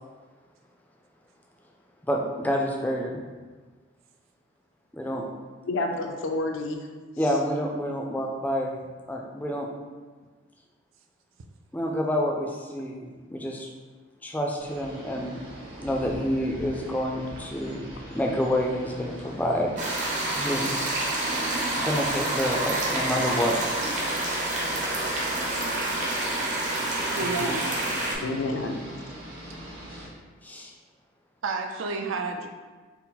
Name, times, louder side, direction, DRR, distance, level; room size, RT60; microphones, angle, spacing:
voice 1, 2.0-3.3 4.9-5.3 7.2-8.8 9.1-9.7 11.7-13.7 14.2-15.5 15.8-20.9 21.8-23.6 30.4-30.7, equal, 10° left, 0 dB, 0.3 m, -28 dB
voice 2, 5.7-6.8 27.2-27.5 28.2-28.8, left 2 dB, 70° left, 3 dB, 0.4 m, -29 dB
sound 1, 14.6-30.1, equal, 55° right, 1.2 m, -42 dB
sound 2, 19.8-28.1, right 2 dB, 35° right, 0.6 m, -28 dB
voice 3, 27.1-27.6 31.4-32.5, right 4 dB, 80° right, 4 dB, 0.4 m, -30 dB
4.4 x 2.0 x 3.9 m, 1.4 s
head